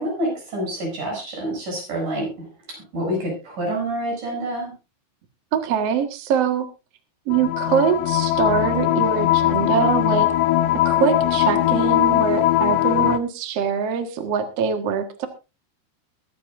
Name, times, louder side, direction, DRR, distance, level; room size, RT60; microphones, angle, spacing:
voice 1, 0.0-4.7, right 1 dB, 40° right, 0 dB, 8.7 m, -27 dB
voice 2, 5.5-6.6 7.3-10.3 10.8-15.3, right 7 dB, 70° right, 7 dB, 1.4 m, -23 dB
sound 1, 7.3-13.2, left 14 dB, 85° left, 3.3 m, -20 dB
22.5 x 11.5 x 2.6 m, 0.29 s
omnidirectional pair, 5.5 m